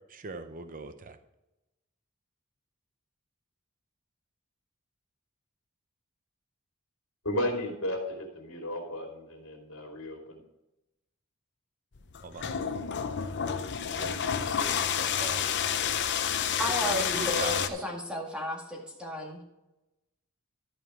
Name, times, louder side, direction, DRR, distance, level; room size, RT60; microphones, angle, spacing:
voice 1, 0.1-1.2 12.2-12.6 13.4-13.5 13.8-15.4 16.8-17.9, right 4 dB, 40° right, 10 dB, 0.6 m, -41 dB
voice 2, 7.2-10.4, left 1 dB, 80° left, 0 dB, 2.9 m, -34 dB
sound 1, 11.9-17.7, left 8 dB, 55° left, 0.7 m, -29 dB
voice 3, 16.6-19.4, left 1 dB, 5° right, -2 dB, 1.9 m, -33 dB
13.0 x 5.5 x 4.8 m, 0.97 s
head